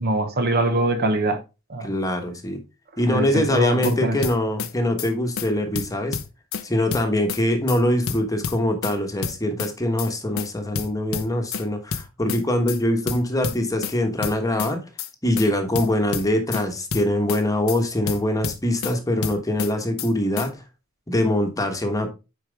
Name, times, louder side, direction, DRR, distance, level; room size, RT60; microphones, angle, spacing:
voice 1, 0.0-1.4 1.7-1.9 3.1-4.2, right 2 dB, 50° right, 1.1 m, -23 dB
voice 2, 1.8-2.6 3.0-6.2 6.6-14.8 15.2-20.6 21.1-22.1, left 1 dB, 15° left, 1.2 m, -23 dB
sound 1, 3.6-3.9 4.2-4.7 5.0-5.1 5.4-5.5 5.8-6.6 6.9-7.4 7.7-7.8 8.1-9.0 9.2-9.7 10.0-10.1 10.4-10.5 10.8-11.6 11.9-12.4 12.7-12.8 13.1-13.9 14.2-14.7 15.0-15.1 15.4-15.5 15.8-16.6 16.9-17.4 17.7-17.8 18.1-18.9 19.2-19.7 20.0-20.1 20.4-20.5, left 6 dB, 70° left, 0.7 m, -29 dB
9.1 x 4.6 x 3.3 m
head